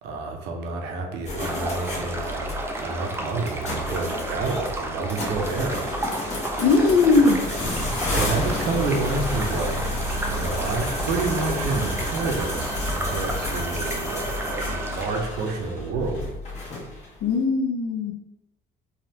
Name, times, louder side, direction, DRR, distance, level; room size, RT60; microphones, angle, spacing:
voice 1, 0.0-5.9 8.1-9.8 10.3-16.3, right 3 dB, 80° right, 2 dB, 0.7 m, -29 dB
sound 1, 1.2-17.2, left 1 dB, 40° left, 1.1 m, -31 dB
sound 2, 1.4-15.2, right 1 dB, 15° right, 0.4 m, -32 dB
Reverse scream, 5.9-15.6, right 3 dB, 10° left, 0.9 m, -41 dB
voice 2, 6.6-8.2 17.2-18.1, left 4 dB, 70° left, 3 dB, 0.5 m, -20 dB
3.3 x 2.4 x 2.8 m, 0.92 s
cardioid pair, 110°, 17 cm